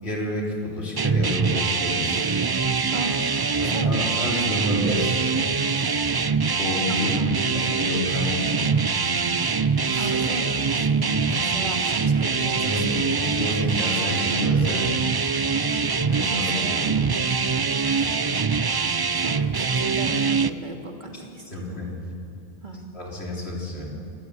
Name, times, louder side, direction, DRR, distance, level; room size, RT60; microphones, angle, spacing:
voice 1, 0.0-2.3 3.6-5.4 6.5-7.2 7.5-8.7 9.9-10.2 11.3-11.5 12.6-14.9 16.1-16.6 21.4-22.0 22.9-23.9, left 1 dB, 90° left, -2 dB, 4.1 m, -29 dB
sound 1, 1.0-20.5, right 5 dB, 35° right, 0.4 m, -23 dB
voice 2, 3.6-4.6 6.9-7.3 10.0-13.0 16.3-17.1 17.9-18.1 19.2-21.8 22.6-22.9, right 2 dB, 50° right, 2 dB, 2.6 m, -36 dB
26.5 x 13.5 x 9.6 m, 2.6 s
omnidirectional pair, 1.0 m